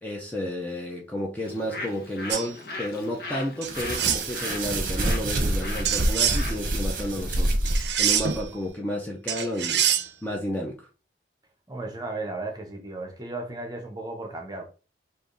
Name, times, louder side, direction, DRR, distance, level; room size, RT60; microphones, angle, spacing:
voice 1, 0.0-7.6 8.0-9.8 10.2-10.8, equal, 10° left, 0.6 m, -31 dB
Bird, 1.4-7.6, left 2 dB, 55° left, 0.9 m, -39 dB
sound 1, 2.3-2.5 3.6-4.3 5.9-6.4 7.7-8.4 9.3-10.1, right 9 dB, 70° right, 0.5 m, -25 dB
sound 2, 3.7-8.4, right 1 dB, 50° right, 0.9 m, -27 dB
voice 2, 11.7-14.6, right 2 dB, 20° right, 0.9 m, -35 dB
3.4 x 2.6 x 3.8 m
head